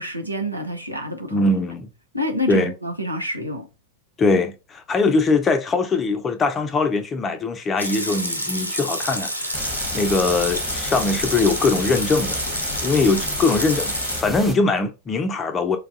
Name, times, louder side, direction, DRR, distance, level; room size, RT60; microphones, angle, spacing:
voice 1, 0.0-1.5 2.1-3.7, equal, 90° right, 0.7 m, -27 dB
voice 2, 1.3-1.9 2.5-2.7 4.2-12.4 12.8-13.9 14.2-15.8, left 3 dB, 20° left, 0.5 m, -21 dB
Water tap faucet / Sink (filling or washing) / Liquid, 7.8-14.2, equal, 85° left, 0.6 m, -28 dB
sound 1, 9.5-14.5, left 1 dB, ahead, 1.1 m, -32 dB
4.5 x 2.3 x 2.5 m
figure-of-eight pair, 90°, 0 cm